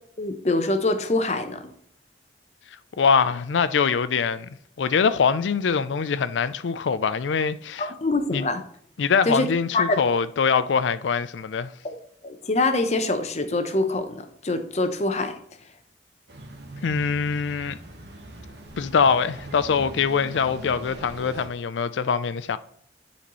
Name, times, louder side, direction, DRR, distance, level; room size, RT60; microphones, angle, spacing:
voice 1, 0.2-1.6 7.8-8.6 9.3-9.5 9.7-10.0 11.8-11.9 12.2-15.4, left 2 dB, 40° left, 0.8 m, -24 dB
voice 2, 3.0-4.5 4.8-7.9 8.3-8.5 9.0-11.7 16.8-17.8 18.8-22.6, left 6 dB, 90° left, 0.4 m, -23 dB
sound 1, 16.3-21.5, right 1 dB, 65° right, 1.2 m, -41 dB
9.9 x 4.3 x 3.0 m
head